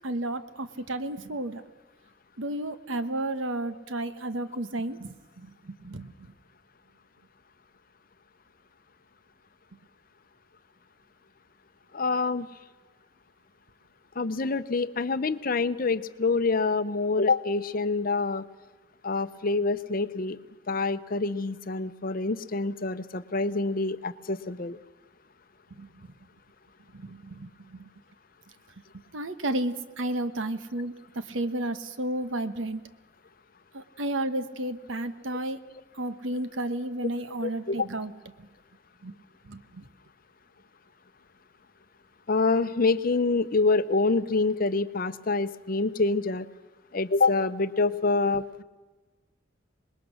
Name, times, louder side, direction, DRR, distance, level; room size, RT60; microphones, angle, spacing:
voice 1, 0.0-1.6 2.4-6.3 25.7-26.1 26.9-27.9 29.1-32.8 33.7-35.6 35.9-38.1 39.0-39.1 39.4-39.9, right 1 dB, 85° right, 11 dB, 1.2 m, -32 dB
voice 2, 11.9-12.5 14.2-18.4 19.0-20.4 20.7-24.8 37.4-37.9 42.3-46.5 46.9-48.6, left 3 dB, 45° left, 13 dB, 0.7 m, -26 dB
25.5 x 20.5 x 6.4 m, 1.2 s
head